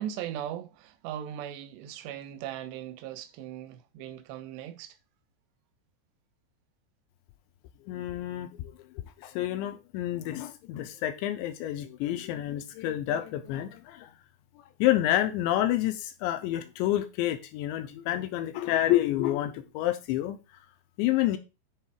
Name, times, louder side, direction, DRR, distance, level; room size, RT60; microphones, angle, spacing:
voice 1, 0.0-5.0, right 10 dB, 80° right, 2.5 m, -38 dB
voice 2, 7.9-8.7 9.2-14.1 14.8-20.4 21.0-21.4, left 13 dB, 80° left, 2.7 m, -28 dB
10.0 x 3.7 x 4.7 m
omnidirectional pair, 5.7 m